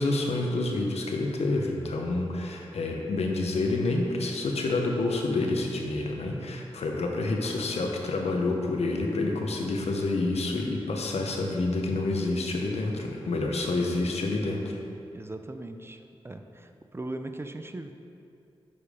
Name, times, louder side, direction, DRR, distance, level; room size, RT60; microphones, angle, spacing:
voice 1, 0.0-14.8, left 2 dB, 90° left, 1 dB, 0.8 m, -28 dB
voice 2, 15.1-17.9, right 2 dB, 25° right, 7 dB, 0.5 m, -39 dB
6.9 x 5.1 x 4.9 m, 2.6 s
cardioid pair, 55°, 10 cm